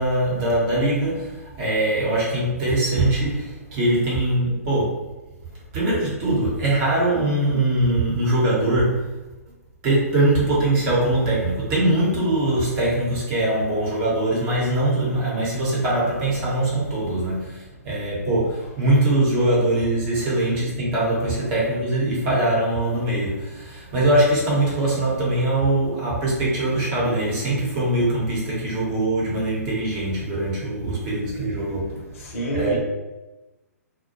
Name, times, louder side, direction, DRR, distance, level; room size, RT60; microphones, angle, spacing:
voice 1, 0.0-5.0 5.7-9.2 9.8-32.0 32.5-32.8, right 1 dB, 35° right, 0.9 m, -22 dB
voice 2, 32.2-32.8, right 1 dB, 55° left, 0.9 m, -27 dB
2.2 x 2.0 x 2.9 m
figure-of-eight pair, 120°, 9 cm